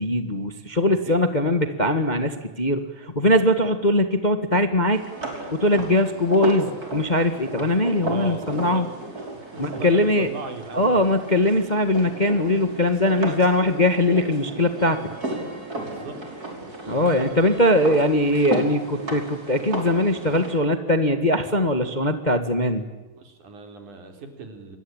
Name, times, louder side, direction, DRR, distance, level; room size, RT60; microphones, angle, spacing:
voice 1, 0.0-5.0 5.5-8.9 9.6-10.3 10.7-15.0 16.9-22.8, left 1 dB, 25° left, 8 dB, 1.1 m, -21 dB
voice 2, 0.9-1.3 8.0-8.9 9.7-10.8 15.8-16.2 23.2-24.8, right 3 dB, 85° right, 6 dB, 5.1 m, -37 dB
sound 1, 4.9-20.5, right 2 dB, 30° right, 5.8 m, -34 dB
27.0 x 21.5 x 8.9 m, 1.2 s
omnidirectional pair, 3.4 m